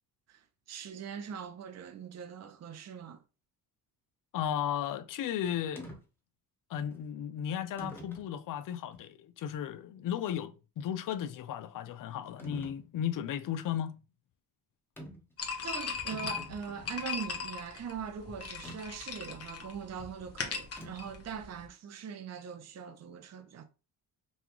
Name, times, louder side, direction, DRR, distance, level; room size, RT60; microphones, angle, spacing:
voice 1, 0.3-3.2 15.6-23.6, right 7 dB, 40° right, 0.6 m, -42 dB
voice 2, 4.3-5.9 6.7-13.9, left 10 dB, 55° left, 0.5 m, -35 dB
sound 1, 5.8-6.0 6.9-7.0 7.8-8.3 8.9-9.0 12.4-12.8 15.0-15.3 15.6-15.7 16.0-17.0 18.6-18.8 20.8-21.2, right 1 dB, 5° left, 1.0 m, -45 dB
sound 2, 15.4-21.6, left 5 dB, 40° left, 1.0 m, -39 dB
5.4 x 2.3 x 3.0 m
cardioid pair, 115°, 39 cm